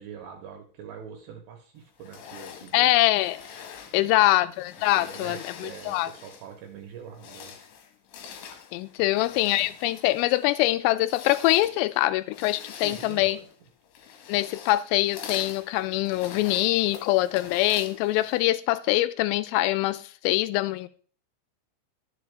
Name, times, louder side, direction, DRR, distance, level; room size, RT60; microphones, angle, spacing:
voice 1, 0.0-3.1 3.9-4.3 4.9-7.5 9.0-9.2 12.8-13.4, right 8 dB, 75° right, 2.9 m, -44 dB
sound 1, 2.0-6.6 7.0-18.6, left 7 dB, 70° left, 3.3 m, -44 dB
voice 2, 2.7-3.4 3.9-6.1 8.7-13.4 14.3-20.9, left 17 dB, 85° left, 3.2 m, -24 dB
12.0 x 7.2 x 3.4 m
omnidirectional pair, 5.9 m